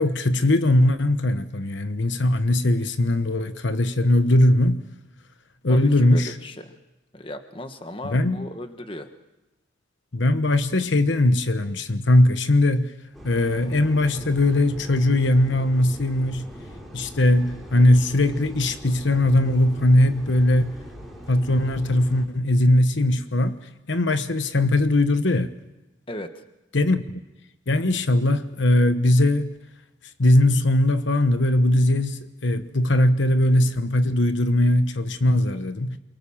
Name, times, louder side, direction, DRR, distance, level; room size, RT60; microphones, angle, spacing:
voice 1, 0.0-4.8 5.6-6.3 8.0-8.5 10.1-12.9 13.2-16.5 16.9-20.8 21.3-23.6 23.9-25.5 26.7-27.2 27.7-29.5 30.2-36.0, left 1 dB, 70° left, 1.1 m, -20 dB
voice 2, 5.7-6.7 7.1-9.1 26.1-26.3, left 1 dB, 25° left, 1.4 m, -36 dB
sound 1, 13.1-22.2, equal, ahead, 4.7 m, -41 dB
29.0 x 23.0 x 7.3 m
head